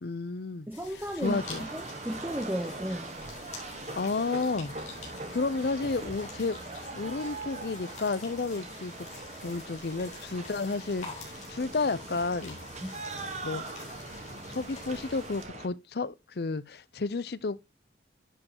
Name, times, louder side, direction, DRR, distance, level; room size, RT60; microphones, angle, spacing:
voice 1, 0.0-0.7 1.2-1.7 4.0-4.7 5.3-6.6 6.9-8.9 9.4-12.6 13.4-13.6 14.3-17.6, left 3 dB, 60° left, 0.6 m, -31 dB
sound 1, 0.7-15.5, left 4 dB, 40° left, 4.2 m, -47 dB
voice 2, 0.7-3.1 12.8-12.9, equal, 10° right, 0.8 m, -34 dB
sound 2, 1.2-15.7, right 3 dB, 40° right, 1.3 m, -42 dB
11.0 x 7.7 x 2.9 m
head